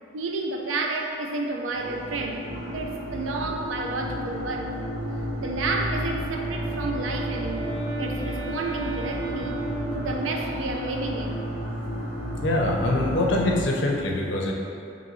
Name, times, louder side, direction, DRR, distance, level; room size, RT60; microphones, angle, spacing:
voice 1, 0.1-4.8 5.4-9.6 9.9-11.5, right 2 dB, 90° right, 2 dB, 0.5 m, -31 dB
sound 1, 1.7-13.6, equal, 70° right, 1.0 m, -32 dB
Wind instrument woodwind instrument, 6.0-10.6, right 2 dB, 10° left, 1.5 m, -36 dB
voice 2, 12.4-14.5, left 2 dB, 70° left, -1 dB, 0.6 m, -24 dB
5.1 x 3.1 x 3.1 m, 2.6 s
head